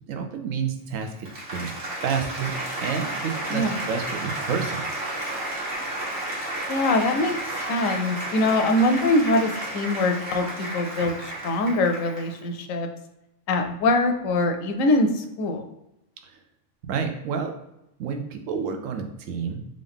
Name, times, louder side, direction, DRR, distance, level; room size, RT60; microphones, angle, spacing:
voice 1, 0.1-1.7 2.0-4.9 16.8-17.5 18.0-19.7, right 6 dB, 75° right, 5 dB, 1.0 m, -29 dB
Applause, 0.9-12.4, right 1 dB, 45° right, 1.3 m, -32 dB
voice 2, 6.7-7.3 7.7-10.5 10.7-12.9 13.5-15.6, left 2 dB, 80° left, 5 dB, 1.0 m, -23 dB
3.8 x 2.5 x 3.5 m, 0.88 s
omnidirectional pair, 1.4 m